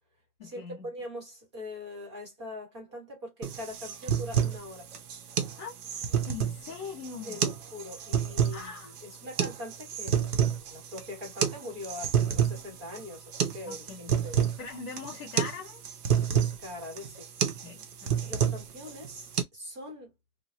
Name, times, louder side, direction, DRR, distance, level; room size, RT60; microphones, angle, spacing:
voice 1, 0.4-0.8 5.6-5.7 6.3-7.4 8.5-8.9 13.7-14.2 14.6-15.8 17.5-18.4, left 6 dB, 20° left, 0.8 m, -41 dB
voice 2, 0.9-4.9 7.2-14.4 16.2-17.3 18.2-19.3 19.5-20.1, left 2 dB, 20° right, 0.8 m, -42 dB
sound 1, 3.4-19.4, right 8 dB, 80° right, 0.8 m, -29 dB
2.9 x 2.0 x 2.9 m
hypercardioid pair, 180°, 45 cm